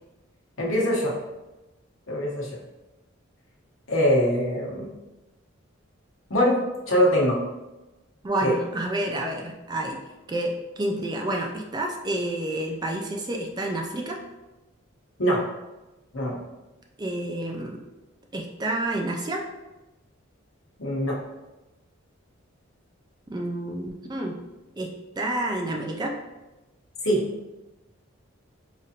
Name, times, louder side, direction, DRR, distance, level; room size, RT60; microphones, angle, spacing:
voice 1, 0.6-1.1 2.1-2.6 3.9-4.9 6.3-6.6 6.9-7.4 8.4-8.5 15.2-15.4 16.1-16.4 20.8-21.2 27.0-27.2, equal, 70° left, -3 dB, 1.0 m, -22 dB
voice 2, 8.2-10.0 10.3-14.2 17.0-17.8 18.3-19.4 23.3-24.4 24.8-26.2, right 1 dB, 20° right, 2 dB, 0.3 m, -29 dB
4.9 x 2.5 x 2.8 m, 1.0 s
head